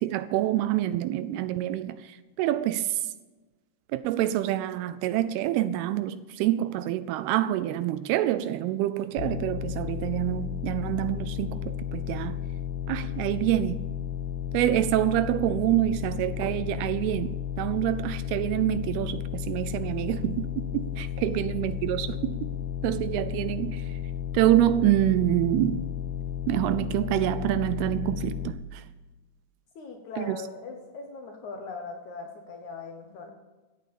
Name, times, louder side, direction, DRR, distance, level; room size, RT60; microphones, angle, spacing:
voice 1, 0.0-3.0 3.9-12.4 12.9-13.9 14.5-22.5 22.8-23.9 24.3-25.9 26.5-28.8 30.2-30.4, right 13 dB, 80° right, 2.4 m, -27 dB
sound 1, 9.2-28.5, left 10 dB, 85° left, 2.6 m, -33 dB
voice 2, 29.8-33.3, left 4 dB, 65° left, 2.0 m, -40 dB
14.5 x 8.9 x 6.9 m
omnidirectional pair, 4.8 m